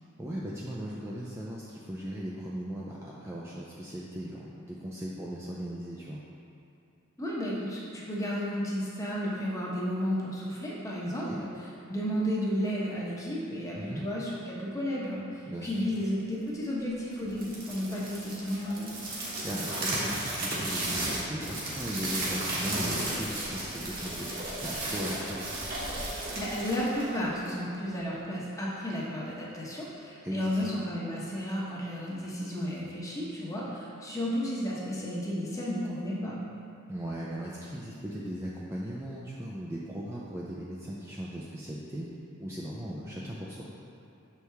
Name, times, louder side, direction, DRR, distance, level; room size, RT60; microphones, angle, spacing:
voice 1, 0.2-6.2 11.1-11.4 13.7-14.0 15.5-15.9 19.4-24.3 24.6-25.6 30.2-30.7 36.9-42.1 42.4-43.6, equal, 15° right, -6 dB, 0.4 m, -38 dB
voice 2, 7.2-11.5 11.9-18.9 26.4-36.4, equal, 15° left, -5 dB, 0.9 m, -33 dB
sound 1, 17.3-27.6, right 1 dB, 40° right, 1.2 m, -34 dB
6.8 x 4.7 x 3.4 m, 2.7 s
head